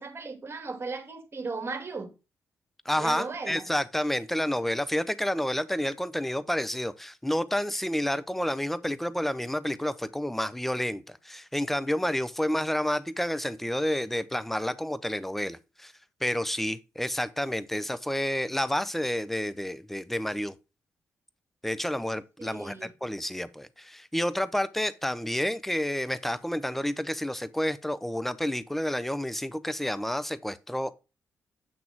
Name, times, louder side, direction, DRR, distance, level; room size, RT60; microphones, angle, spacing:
voice 1, 0.0-2.1 3.0-3.7 22.4-22.9, right 4 dB, 35° right, 2.3 m, -36 dB
voice 2, 2.9-15.9 16.2-20.5 21.6-30.9, left 1 dB, 5° left, 0.7 m, -30 dB
8.8 x 6.0 x 3.6 m
hypercardioid pair, 40°, 7 cm